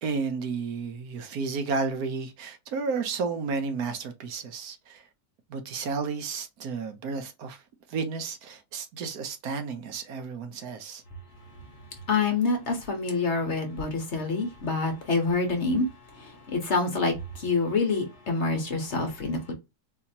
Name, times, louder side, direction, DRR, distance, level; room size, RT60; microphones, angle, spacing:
voice 1, 0.0-5.0 5.5-7.6 7.9-11.0, right 4 dB, 70° right, 1.2 m, -32 dB
voice 2, 12.1-15.9 16.5-19.5, left 3 dB, 50° left, 1.3 m, -26 dB
4.1 x 2.8 x 2.7 m
omnidirectional pair, 1.7 m